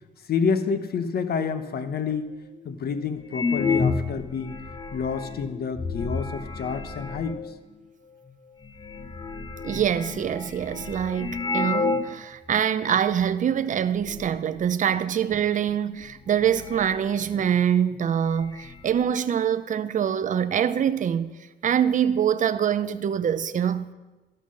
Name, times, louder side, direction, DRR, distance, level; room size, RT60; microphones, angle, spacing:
voice 1, 0.3-2.3 2.6-4.6 4.9-7.4, left 6 dB, 50° left, 0.9 m, -28 dB
sound 1, 2.6-2.7 3.3-7.5 8.3-8.4 8.6-12.2 12.5-12.6 13.2-13.6 13.8-14.3 15.6-15.7 16.1-17.7 17.9-18.0 18.3-19.0, left 4 dB, 20° left, 0.6 m, -31 dB
voice 2, 9.6-21.3 21.6-23.9, right 8 dB, 40° right, 0.5 m, -24 dB
12.0 x 5.6 x 6.3 m
cardioid pair, 90°, 20 cm